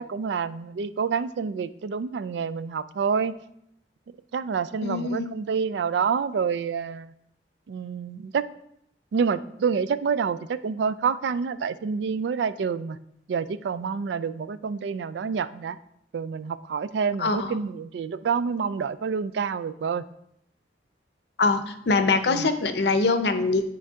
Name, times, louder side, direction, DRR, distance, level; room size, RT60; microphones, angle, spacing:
voice 1, 0.0-3.3 4.3-7.1 7.7-8.5 9.1-13.0 13.3-15.8 16.1-20.0 22.3-22.5, right 6 dB, 75° right, 15 dB, 0.3 m, -28 dB
voice 2, 4.8-5.3 17.2-17.5 21.4-23.6, left 3 dB, 65° left, 9 dB, 0.6 m, -23 dB
10.0 x 4.5 x 3.6 m, 0.75 s
head